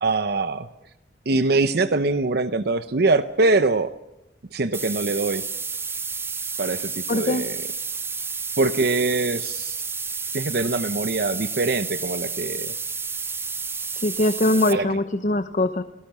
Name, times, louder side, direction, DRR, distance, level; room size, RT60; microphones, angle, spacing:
voice 1, 0.0-0.7 1.3-3.9 4.5-5.4 6.6-7.6 8.6-9.8 10.3-12.7 14.7-14.9, right 3 dB, 60° right, 11 dB, 0.8 m, -23 dB
sound 1, 4.7-14.7, right 5 dB, 15° right, 0.8 m, -31 dB
voice 2, 7.1-7.4 14.0-15.8, left 1 dB, 45° left, 10 dB, 1.0 m, -22 dB
29.0 x 18.5 x 6.1 m, 0.99 s
head